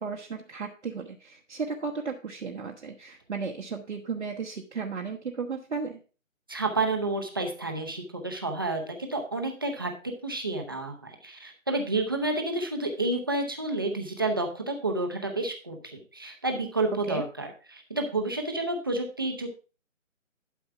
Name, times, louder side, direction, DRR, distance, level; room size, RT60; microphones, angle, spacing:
voice 1, 0.0-6.0 16.9-17.2, right 5 dB, 60° right, 1 dB, 1.1 m, -35 dB
voice 2, 6.5-9.9 10.2-19.5, right 2 dB, 15° right, 3 dB, 0.7 m, -30 dB
11.5 x 4.7 x 4.5 m, 0.36 s
figure-of-eight pair, 160°, 40 cm